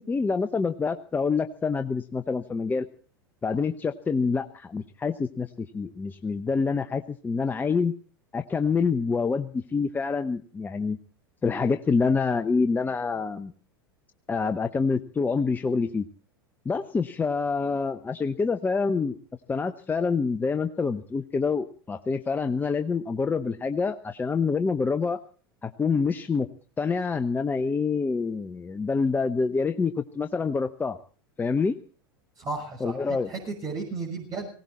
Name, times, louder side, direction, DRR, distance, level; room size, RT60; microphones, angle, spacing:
voice 1, 0.0-2.9 3.4-7.9 8.3-11.0 11.4-13.5 14.3-16.1 16.6-19.2 19.5-25.2 25.6-26.5 26.8-31.0 31.4-31.8 32.8-33.3, left 4 dB, 15° left, 9 dB, 0.9 m, -26 dB
voice 2, 32.4-34.5, right 3 dB, 30° right, 0 dB, 6.5 m, -34 dB
19.5 x 17.5 x 4.2 m, 0.42 s
figure-of-eight pair, 85°, 12 cm